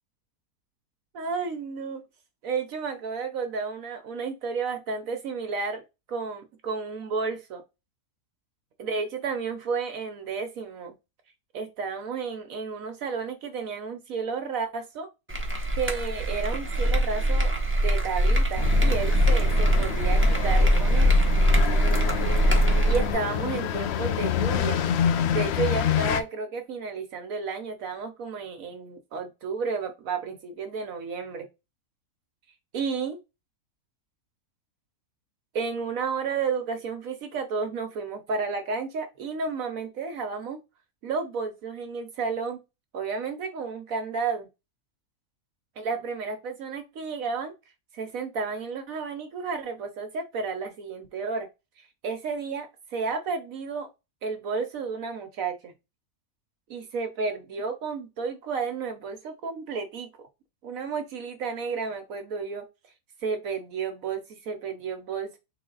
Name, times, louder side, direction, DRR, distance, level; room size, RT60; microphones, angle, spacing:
voice 1, 1.1-2.0 2.4-5.8 6.1-7.6 8.8-10.9 11.5-15.1 15.8-21.1 22.8-24.8 25.3-31.5 32.7-33.2 35.5-40.6 41.0-42.6 42.9-44.5 45.8-47.5 47.9-51.5 51.8-53.9 54.2-55.7 56.7-60.1 60.6-62.6 63.2-65.4, right 5 dB, 70° right, 6 dB, 1.1 m, -32 dB
sound 1, 15.3-23.1, equal, 10° right, 0.8 m, -22 dB
sound 2, 18.6-26.2, left 9 dB, 65° left, 0.6 m, -28 dB
3.8 x 3.4 x 3.8 m, 0.25 s
omnidirectional pair, 1.5 m